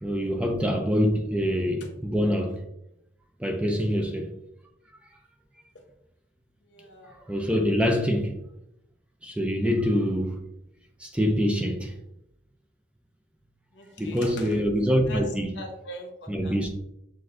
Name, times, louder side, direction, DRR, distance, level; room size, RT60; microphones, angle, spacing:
voice 1, 0.0-2.6 3.4-4.3 7.3-8.4 9.2-10.4 11.0-11.9 14.0-15.5 16.3-16.7, equal, 5° right, 0.4 m, -25 dB
voice 2, 6.6-7.2 13.7-14.6 15.1-16.6, left 1 dB, 75° left, 0.8 m, -41 dB
6.0 x 2.5 x 2.5 m
head